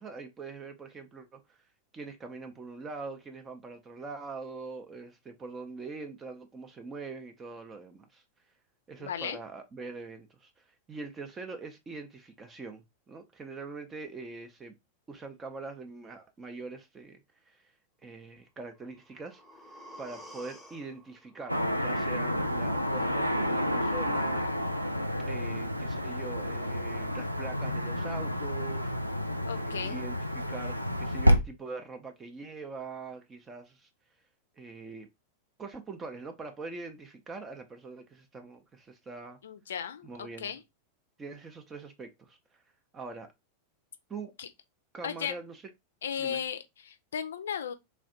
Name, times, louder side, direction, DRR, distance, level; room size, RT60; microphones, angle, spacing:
voice 1, 0.0-1.6 1.9-8.2 8.9-14.7 15.1-17.2 17.5-17.7 18.0-19.4 20.0-24.5 25.2-28.9 29.5-33.9 34.6-35.1 35.6-39.4 40.0-40.5 41.2-42.4 42.9-43.3 44.1-44.3 44.9-45.6 46.2-46.4, right 4 dB, 20° right, 0.6 m, -43 dB
voice 2, 9.0-9.4 29.5-30.0 39.4-40.6 44.4-44.5 45.0-45.3 46.0-47.7, left 8 dB, 65° left, 0.4 m, -36 dB
sound 1, 18.7-22.7 23.1-23.2, equal, ahead, 1.0 m, -52 dB
Car passing by / Traffic noise roadway noise, 21.5-31.4, equal, 90° right, 0.4 m, -29 dB
3.3 x 2.5 x 3.8 m
figure-of-eight pair, 90°, 0 cm